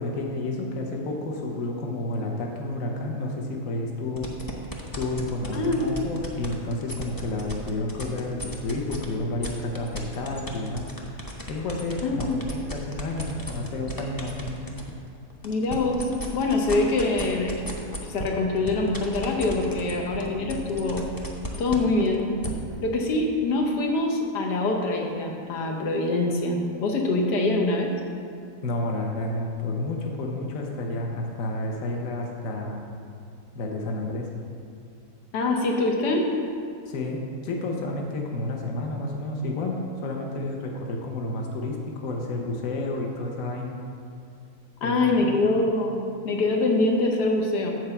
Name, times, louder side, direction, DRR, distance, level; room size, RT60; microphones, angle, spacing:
voice 1, 0.0-4.3 4.9-10.8 11.5-14.6 28.6-32.8 33.5-34.3 36.9-43.7 44.8-45.0 45.2-45.4, left 2 dB, 60° left, 1 dB, 1.3 m, -30 dB
sound 1, 4.2-9.0 9.4-14.9 15.3-22.5, equal, 25° left, 0.4 m, -35 dB
voice 2, 5.5-5.8 12.0-12.4 15.4-17.5 18.0-21.0 21.6-22.3 22.8-27.9 35.3-36.3 44.8-47.7, left 2 dB, 90° left, 1 dB, 1.5 m, -24 dB
7.9 x 4.6 x 7.1 m, 2.3 s
omnidirectional pair, 1.7 m